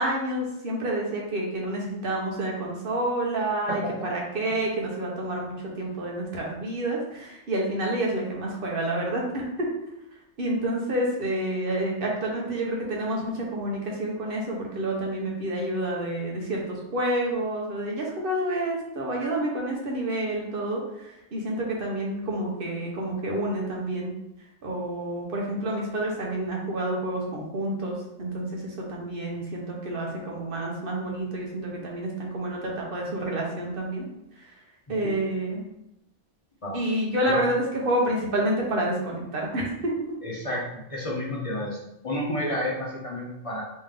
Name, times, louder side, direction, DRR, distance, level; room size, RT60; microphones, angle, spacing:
voice 1, 0.0-9.7 10.4-24.1 24.6-34.1 34.4-34.5 34.9-35.6 36.7-39.9, right 1 dB, 50° right, -2 dB, 1.1 m, -29 dB
voice 2, 40.2-41.8 42.0-43.6, left 1 dB, 30° left, -3 dB, 0.9 m, -30 dB
3.5 x 3.2 x 3.4 m, 0.86 s
omnidirectional pair, 1.2 m